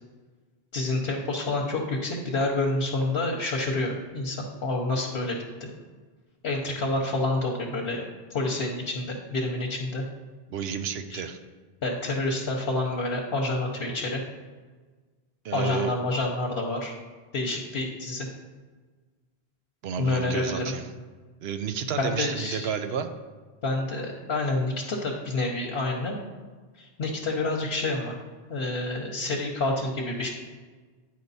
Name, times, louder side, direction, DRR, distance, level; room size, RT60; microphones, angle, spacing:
voice 1, 0.7-5.7 6.4-10.0 11.1-11.2 11.8-14.2 15.5-16.9 17.3-18.3 20.0-20.6 22.0-22.7 23.6-26.2 26.8-28.2 28.5-30.3, left 2 dB, 70° left, 0 dB, 1.0 m, -28 dB
voice 2, 10.5-11.4 15.4-15.9 19.8-20.9 21.4-23.1, right 7 dB, 90° right, 8 dB, 0.8 m, -31 dB
9.4 x 4.8 x 4.1 m, 1.4 s
omnidirectional pair, 1.0 m